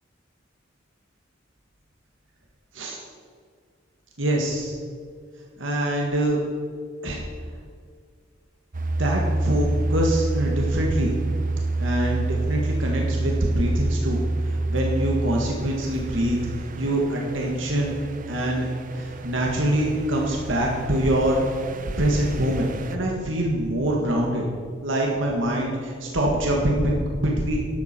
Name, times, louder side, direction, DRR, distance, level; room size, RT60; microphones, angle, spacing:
voice 1, 4.2-4.7 5.6-6.4 7.0-7.2 9.0-11.2 11.8-17.9 18.3-21.6 22.0-24.4 24.8-27.7, right 1 dB, 80° right, -1 dB, 1.9 m, -24 dB
sound 1, 8.7-23.0, right 2 dB, 45° right, 0.8 m, -28 dB
13.0 x 11.0 x 4.5 m, 2.1 s
head